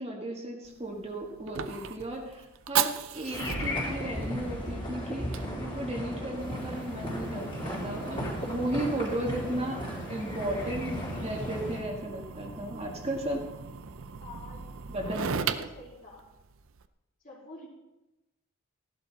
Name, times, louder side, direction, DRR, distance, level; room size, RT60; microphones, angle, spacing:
voice 1, 0.0-9.8 10.1-13.4 14.9-15.5, right 1 dB, 30° right, -1 dB, 1.8 m, -35 dB
Fire, 0.6-16.9, right 7 dB, 65° right, 0.6 m, -38 dB
sound 1, 3.3-11.8, equal, 25° left, 3.7 m, -35 dB
voice 2, 14.2-14.7 15.0-16.2 17.2-17.7, left 2 dB, 40° left, -4 dB, 3.4 m, -48 dB
15.0 x 11.0 x 4.2 m, 1.0 s
head